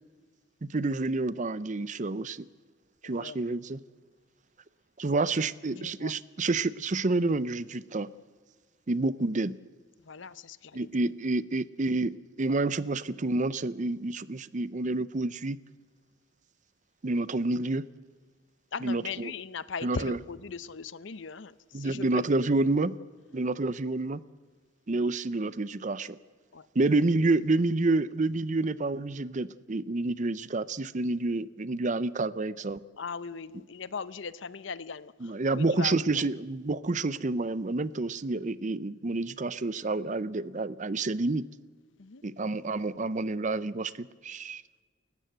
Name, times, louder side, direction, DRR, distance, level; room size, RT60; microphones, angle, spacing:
voice 1, 0.6-2.5 3.0-3.8 5.0-8.1 8.9-9.6 10.7-15.6 17.0-17.8 18.8-19.3 19.8-20.2 21.7-22.9 23.3-24.2 24.9-26.2 26.7-32.8 35.2-41.4 42.2-44.6, right 2 dB, 40° right, 17 dB, 0.6 m, -29 dB
voice 2, 3.0-3.4 5.7-6.1 10.0-11.1 18.7-22.5 26.5-26.7 33.0-36.3 42.0-42.2, left 5 dB, 65° left, 16 dB, 0.7 m, -39 dB
29.5 x 14.5 x 8.0 m, 1.5 s
head